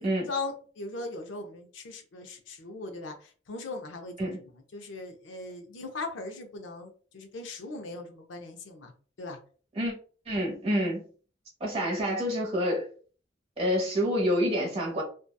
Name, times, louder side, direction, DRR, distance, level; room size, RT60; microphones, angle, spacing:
voice 1, 0.0-4.4 4.7-8.9 9.2-9.4, left 3 dB, 70° left, 0.5 m, -39 dB
voice 2, 10.3-11.0 11.6-12.9 13.6-15.0, equal, 30° right, 0.9 m, -27 dB
2.6 x 2.2 x 2.2 m
head